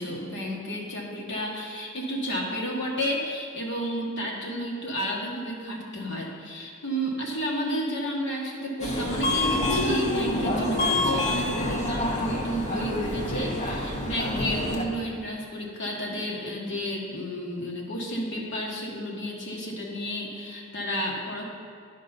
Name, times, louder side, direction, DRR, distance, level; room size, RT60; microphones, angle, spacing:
voice 1, 0.0-21.4, equal, 55° left, -2 dB, 1.4 m, -31 dB
Subway metro underground, 8.8-14.8, left 1 dB, 35° left, 0.8 m, -27 dB
10.5 x 5.2 x 4.1 m, 2.2 s
head